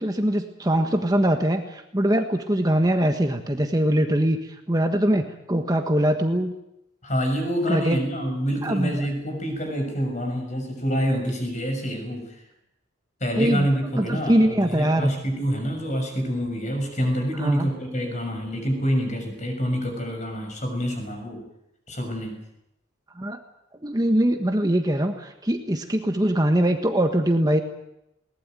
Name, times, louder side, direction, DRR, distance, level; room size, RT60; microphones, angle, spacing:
voice 1, 0.0-6.5 7.7-8.0 8.6-9.0 13.4-15.1 17.4-17.7 23.2-23.4 23.8-27.6, right 1 dB, 20° right, 5 dB, 1.4 m, -22 dB
voice 2, 7.0-12.4 13.2-21.4 21.9-22.4, equal, 40° left, 4 dB, 6.4 m, -27 dB
21.0 x 19.0 x 9.1 m, 0.84 s
head